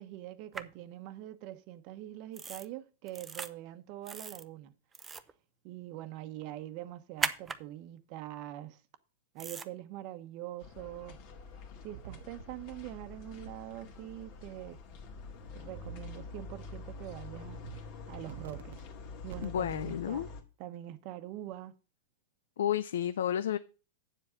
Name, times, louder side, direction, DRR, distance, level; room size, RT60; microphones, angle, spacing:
voice 1, 0.0-4.7 5.6-8.8 9.3-11.2 11.8-14.8 15.5-17.6 17.9-18.8 19.2-20.3 20.6-21.7, right 14 dB, 45° right, 1.0 m, -44 dB
sound 1, 0.5-0.6 2.3-2.6 3.1-3.5 4.1-4.4 4.9-5.3 7.2-7.6 9.4-9.7, right 5 dB, 15° right, 0.6 m, -36 dB
sound 2, 10.6-20.4, left 4 dB, 45° left, 1.9 m, -47 dB
sound 3, 11.9-12.4 13.4-13.5 15.7-16.2 16.6-16.9 17.4-17.8 18.1-18.8 19.3-19.7, right 10 dB, 75° right, 0.9 m, -47 dB
voice 2, 19.4-20.3 22.6-23.6, left 10 dB, 85° left, 0.5 m, -31 dB
8.9 x 7.4 x 5.1 m
supercardioid pair, 150°, 0 cm